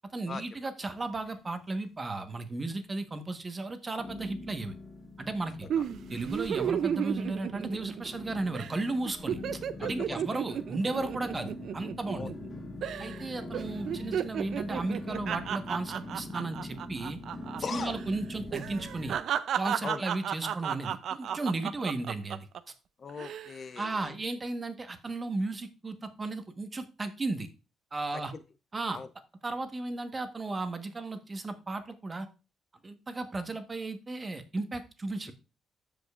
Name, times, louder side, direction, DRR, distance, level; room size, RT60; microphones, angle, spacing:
voice 1, 0.1-4.7 5.2-5.7 6.1-9.4 9.8-12.3 13.0-17.2 17.7-19.2 19.5-22.5 23.8-27.5 27.9-28.3 28.7-29.0 29.4-32.3 32.8-35.3, right 2 dB, 30° right, 8 dB, 1.2 m, -35 dB
sound 1, 0.8-1.8 2.0-2.7 3.2-3.3 4.0-19.2, left 2 dB, 30° left, 2.1 m, -43 dB
sound 2, 5.7-8.2 8.5-8.7 9.0-12.5 12.8-13.2 13.5-17.6 17.9-18.0 18.5-22.6 23.1-23.5, right 9 dB, 70° right, 0.4 m, -33 dB
voice 2, 9.8-10.2 12.1-12.3 17.6-17.9 19.8-20.0 23.0-24.1 28.1-28.4 28.9-29.1, left 5 dB, 45° left, 13 dB, 0.5 m, -39 dB
14.5 x 5.2 x 2.4 m, 0.30 s
cardioid pair, 90°, 0 cm